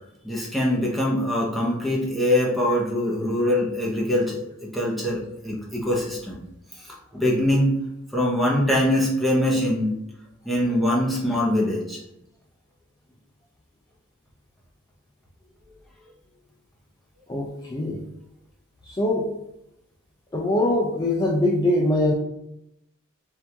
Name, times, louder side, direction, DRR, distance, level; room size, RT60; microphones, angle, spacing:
voice 1, 0.2-6.4 7.1-7.7 8.1-10.0 10.4-12.0, left 1 dB, ahead, -4 dB, 0.9 m, -23 dB
voice 2, 17.3-18.0 18.9-19.3 20.3-22.1, left 1 dB, 20° left, -3 dB, 0.4 m, -22 dB
4.4 x 2.6 x 3.4 m, 0.82 s
head